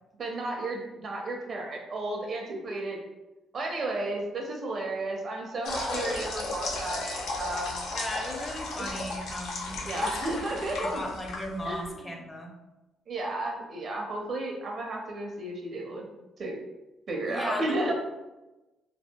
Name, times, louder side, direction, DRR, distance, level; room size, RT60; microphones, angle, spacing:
voice 1, 0.2-3.0 3.5-7.8 9.8-11.0 11.6-11.9 13.1-16.1 16.4-16.6 17.1-17.9, right 2 dB, 50° right, 1 dB, 0.5 m, -33 dB
sound 1, 5.6-11.9, left 2 dB, 90° left, 0.4 m, -34 dB
voice 2, 7.9-12.5 17.3-17.9, left 1 dB, 20° left, 0 dB, 0.5 m, -37 dB
2.7 x 2.2 x 2.2 m, 1.0 s
cardioid pair, 90°, 0 cm